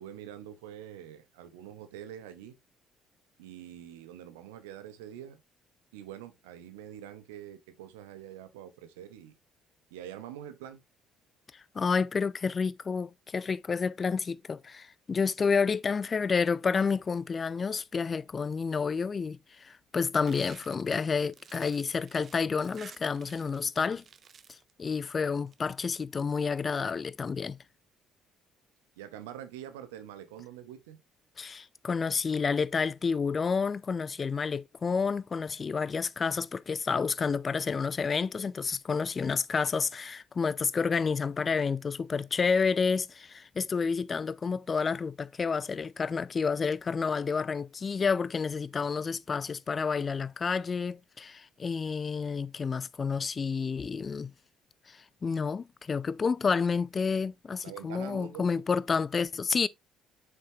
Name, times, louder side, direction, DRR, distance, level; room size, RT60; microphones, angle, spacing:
voice 1, 0.0-2.5 3.4-5.4 5.9-9.3 9.9-10.8 29.0-31.0 57.6-58.6, right 10 dB, 80° right, 0.8 m, -45 dB
voice 2, 11.7-24.0 24.8-27.6 31.4-54.3 54.9-59.7, left 5 dB, 35° left, 0.5 m, -30 dB
sound 1, 20.3-23.6 23.9-24.7 25.4-25.8, right 7 dB, 45° right, 0.7 m, -53 dB
7.4 x 6.1 x 2.7 m
hypercardioid pair, 50°, 0 cm